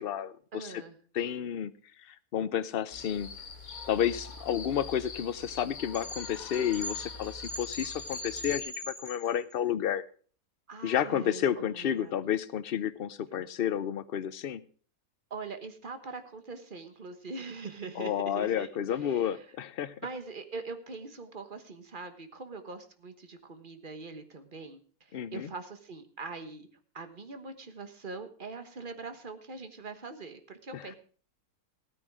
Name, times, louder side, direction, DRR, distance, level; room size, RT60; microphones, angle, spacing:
voice 1, 0.0-0.8 1.1-1.7 2.0-3.3 3.9-10.0 10.8-14.6 18.0-19.9 25.1-25.5 30.7-30.9, left 9 dB, 50° left, 14 dB, 0.8 m, -31 dB
voice 2, 0.5-1.0 10.7-12.1 13.3-13.5 15.3-18.7 19.0-19.5 20.0-26.7 26.9-31.0, right 4 dB, 35° right, 9 dB, 1.4 m, -42 dB
sound 1, 2.9-8.6, left 4 dB, 70° left, 2.4 m, -43 dB
sound 2, 5.9-9.5, left 1 dB, 15° left, 3.3 m, -40 dB
16.0 x 9.4 x 4.7 m, 0.43 s
omnidirectional pair, 1.5 m